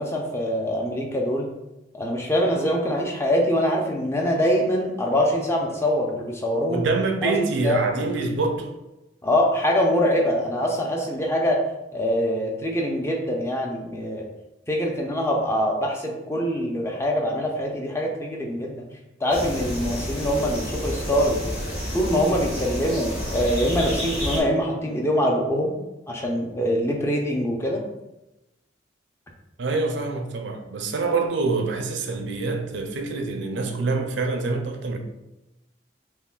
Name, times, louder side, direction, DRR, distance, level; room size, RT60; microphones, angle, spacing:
voice 1, 0.0-1.5 1.9-6.9 7.2-7.3 7.6-7.8 9.2-11.6 11.9-14.2 14.7-18.8 19.2-21.4 21.9-25.7 26.1-27.8, equal, 15° left, 0.4 m, -24 dB
voice 2, 6.7-8.7 29.6-35.0, right 3 dB, 75° right, 0.5 m, -26 dB
sound 1, 19.3-24.4, equal, 30° left, 1.0 m, -30 dB
5.6 x 2.1 x 2.3 m
head